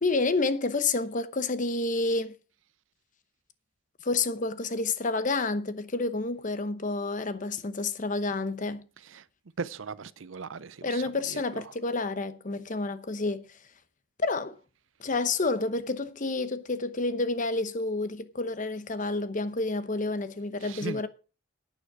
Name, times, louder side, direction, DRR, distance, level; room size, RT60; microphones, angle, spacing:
voice 1, 0.0-2.3 4.0-8.9 10.8-13.4 14.2-14.6 15.0-21.1, left 3 dB, 40° left, 0.9 m, -29 dB
voice 2, 9.6-11.0 11.3-11.4 20.6-21.0, right 5 dB, 75° right, 0.6 m, -38 dB
11.0 x 9.0 x 4.9 m
head